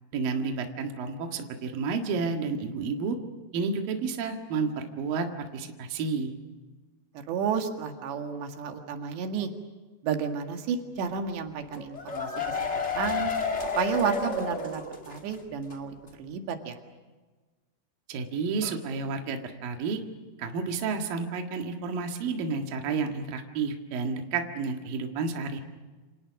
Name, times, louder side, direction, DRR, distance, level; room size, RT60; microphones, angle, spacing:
voice 1, 0.1-3.2 3.5-5.3 5.5-6.3 18.1-20.0 20.4-25.6, right 4 dB, 60° right, 4 dB, 3.3 m, -31 dB
voice 2, 7.3-9.5 10.0-13.3 13.8-16.8, right 6 dB, 90° right, 4 dB, 4.1 m, -31 dB
sound 1, 11.7-15.3 15.6-15.7 16.1-16.2, left 4 dB, 30° left, 1.2 m, -31 dB
29.0 x 27.5 x 6.4 m, 1.3 s
omnidirectional pair, 4.9 m